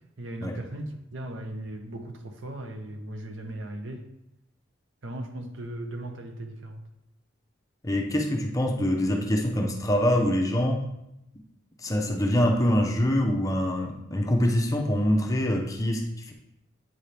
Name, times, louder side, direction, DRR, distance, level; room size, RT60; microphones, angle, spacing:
voice 1, 0.2-4.1 5.0-6.8, right 1 dB, 65° right, 4 dB, 0.8 m, -37 dB
voice 2, 7.8-10.8 11.8-16.3, left 1 dB, 15° left, 1 dB, 0.7 m, -25 dB
9.0 x 4.3 x 3.3 m, 0.85 s
head